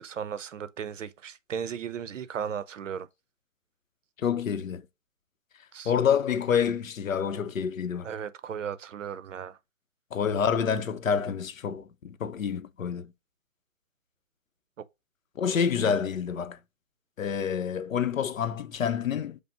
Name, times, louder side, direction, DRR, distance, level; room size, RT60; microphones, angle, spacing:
voice 1, 0.0-3.1 5.7-5.9 8.0-9.6, right 8 dB, 70° right, 0.6 m, -36 dB
voice 2, 4.2-4.8 5.9-8.1 10.1-13.1 15.4-16.6 17.2-19.4, left 7 dB, 80° left, 0.7 m, -28 dB
5.4 x 2.0 x 4.8 m
hypercardioid pair, 155°, 40 cm